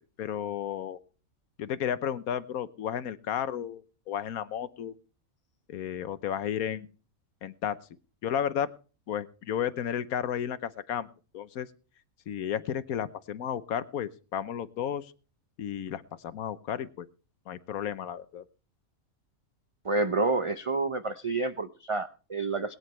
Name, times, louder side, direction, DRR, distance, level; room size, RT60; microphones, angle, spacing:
voice 1, 0.2-1.0 1.6-5.0 5.7-6.9 7.4-7.8 8.2-8.7 9.1-11.1 11.3-11.7 12.3-15.1 15.6-17.1 17.5-18.4, left 9 dB, 90° left, 13 dB, 1.3 m, -33 dB
voice 2, 19.8-22.7, right 3 dB, 30° right, 10 dB, 0.6 m, -29 dB
21.5 x 9.8 x 3.2 m, 0.37 s
omnidirectional pair, 1.5 m